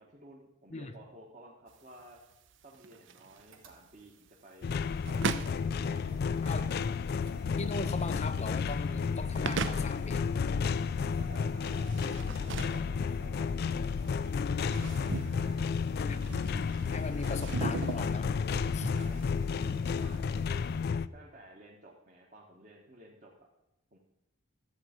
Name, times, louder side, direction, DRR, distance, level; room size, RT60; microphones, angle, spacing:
voice 1, 0.0-2.2 2.6-5.2 5.7-6.9 11.1-16.3 18.9-20.2 21.1-23.3 23.9-24.0, right 1 dB, 35° right, -4 dB, 1.3 m, -53 dB
sound 1, 1.7-20.9, right 4 dB, 55° right, 0.6 m, -41 dB
sound 2, 3.5-4.2 5.0-5.9 6.8-7.8, right 5 dB, 70° right, 1.6 m, -59 dB
sound 3, 4.6-21.1, left 5 dB, 45° left, 0.3 m, -32 dB
voice 2, 7.6-10.3 15.5-15.7 16.1-16.2 16.9-18.3 18.7-18.9, left 3 dB, 30° left, 10 dB, 0.7 m, -39 dB
13.0 x 7.9 x 5.1 m, 0.88 s
head